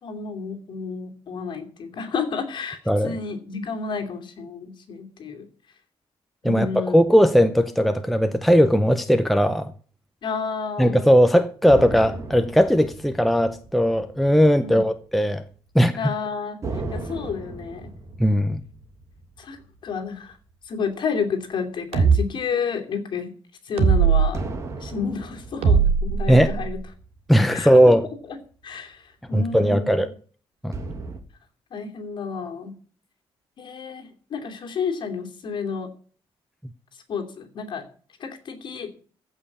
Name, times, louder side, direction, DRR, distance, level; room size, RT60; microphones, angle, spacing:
voice 1, 0.0-2.8 3.0-5.5 6.4-7.0 10.2-11.0 14.6-14.9 15.9-16.6 16.9-17.9 19.4-19.6 19.8-20.4 20.6-23.3 23.6-24.4 24.8-26.8 27.5-27.7 28.6-30.0 31.7-32.7 33.6-35.9 37.1-37.9 38.2-38.9, left 5 dB, 50° left, 2.7 m, -30 dB
voice 2, 2.9-3.2 6.4-9.7 10.8-15.4 15.7-16.0 18.2-18.6 26.3-26.5 27.3-28.1 29.3-30.1 30.6-30.7, equal, ahead, 0.6 m, -18 dB
sound 1, 11.7-15.4 15.7-15.8 16.6-21.2 24.3-28.0 30.7-31.2, right 3 dB, 30° right, 1.8 m, -37 dB
sound 2, 21.9-22.2 23.8-24.3 25.6-26.8, right 6 dB, 75° right, 3.1 m, -18 dB
15.0 x 5.6 x 8.6 m
cardioid pair, 165°, 10 cm